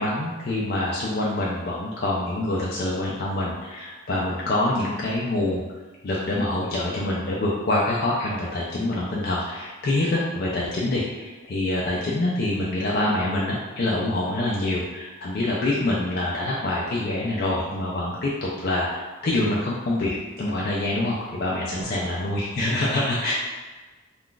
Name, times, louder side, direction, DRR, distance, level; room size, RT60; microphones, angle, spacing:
voice 1, 0.0-5.6 6.0-23.3, left 1 dB, 45° left, -5 dB, 0.3 m, -26 dB
sound 1, 21.8-21.9, right 1 dB, 30° right, 0.5 m, -48 dB
2.4 x 2.3 x 3.7 m, 1.3 s
head